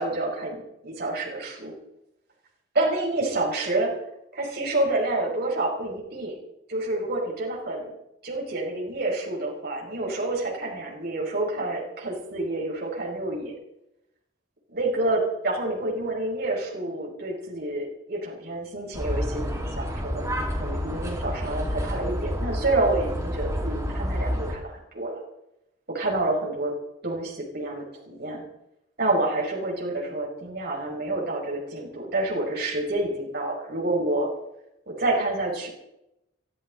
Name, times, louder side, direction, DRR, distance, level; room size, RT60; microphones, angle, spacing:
voice 1, 0.0-1.7 2.7-3.9 4.3-6.4 6.7-7.9 8.2-13.5 14.7-20.3 20.6-25.2 25.9-26.7 27.0-28.4 29.0-34.3 34.9-35.7, right 2 dB, 55° right, -2 dB, 5.6 m, -28 dB
sound 1, 18.9-24.5, equal, 15° right, 4.2 m, -29 dB
23.0 x 14.5 x 4.0 m, 0.84 s
head